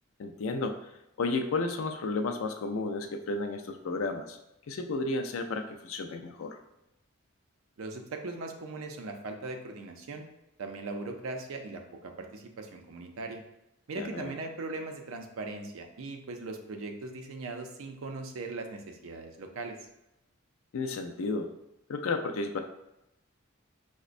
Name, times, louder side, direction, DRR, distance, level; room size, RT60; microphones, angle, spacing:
voice 1, 0.2-0.9 1.2-4.4 4.7-6.6 14.0-14.3 20.7-21.5 21.9-22.6, left 3 dB, 70° left, 6 dB, 0.4 m, -32 dB
voice 2, 7.8-10.3 10.6-13.4 13.9-19.8, right 3 dB, 70° right, 4 dB, 0.4 m, -39 dB
5.0 x 2.1 x 2.5 m, 0.89 s
head